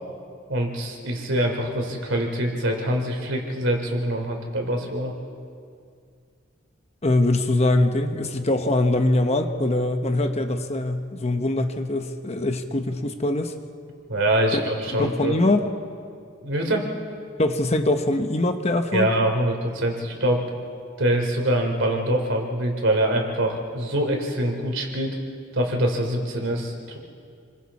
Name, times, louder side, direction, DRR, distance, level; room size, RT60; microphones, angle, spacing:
voice 1, 0.5-5.1 14.1-15.4 16.4-16.9 18.9-20.5 21.0-25.2 25.5-27.0, right 1 dB, 60° right, 2 dB, 3.3 m, -24 dB
voice 2, 7.0-13.5 14.5-14.6 14.9-15.7 17.4-19.1, left 2 dB, 30° left, 6 dB, 1.0 m, -23 dB
29.0 x 22.5 x 4.2 m, 2.3 s
head